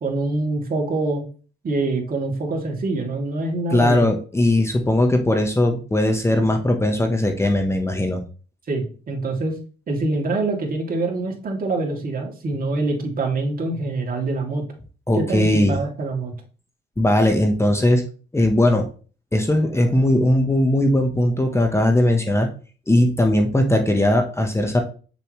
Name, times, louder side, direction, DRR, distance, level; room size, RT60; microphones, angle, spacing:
voice 1, 0.0-1.2 1.6-4.0 8.7-9.5 9.9-14.6 15.1-16.4, right 2 dB, 45° right, 1 dB, 2.8 m, -25 dB
voice 2, 3.7-8.2 15.1-15.8 17.0-18.0 18.3-18.9 19.3-22.5 22.9-24.8, left 1 dB, 15° left, 4 dB, 1.2 m, -19 dB
8.2 x 6.8 x 3.2 m, 0.38 s
cardioid pair, 90°, 20 cm